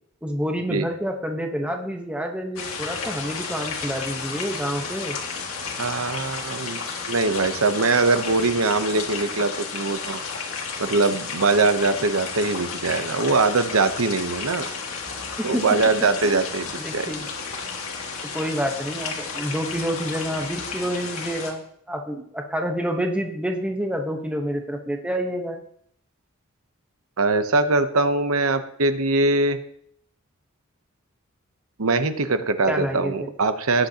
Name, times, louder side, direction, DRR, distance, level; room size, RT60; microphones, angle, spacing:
voice 1, 0.2-5.2 15.4-15.7 16.2-16.4 16.8-17.3 18.3-25.6 32.7-33.3, equal, 5° right, 3 dB, 1.0 m, -28 dB
sound 1, 2.6-21.5, left 5 dB, 80° left, 1.9 m, -32 dB
voice 2, 5.8-6.8 7.1-10.2 10.8-14.7 15.4-16.7 16.9-17.1 27.2-29.6 31.8-33.9, right 3 dB, 85° right, 10 dB, 0.9 m, -22 dB
18.0 x 8.1 x 2.9 m, 0.66 s
head